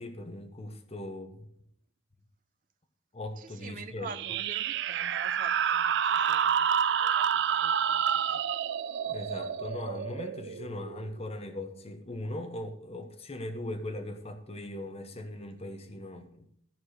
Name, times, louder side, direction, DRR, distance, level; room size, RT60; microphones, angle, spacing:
voice 1, 0.0-1.5 3.1-4.1 9.1-16.5, left 1 dB, 30° left, 1.0 m, -39 dB
voice 2, 3.4-8.4, right 5 dB, 45° right, 0.8 m, -46 dB
sound 1, 4.1-11.3, right 8 dB, 60° right, 0.4 m, -29 dB
14.0 x 4.7 x 6.4 m
head